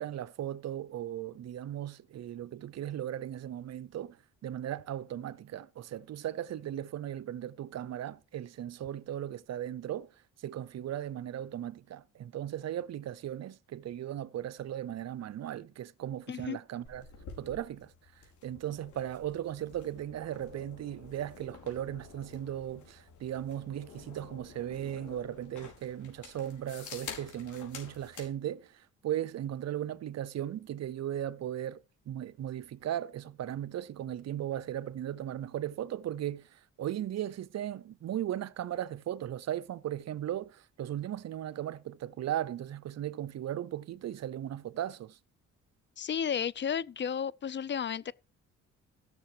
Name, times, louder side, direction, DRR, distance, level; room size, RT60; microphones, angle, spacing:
voice 1, 0.0-10.1 10.4-17.1 17.4-17.9 18.4-45.2, right 11 dB, 60° right, 0.7 m, -37 dB
sound 1, 16.8-28.3, left 6 dB, 75° left, 5.0 m, -50 dB
voice 2, 46.0-48.1, left 7 dB, 40° left, 0.5 m, -33 dB
15.5 x 6.7 x 4.9 m
cardioid pair, 90°, 30 cm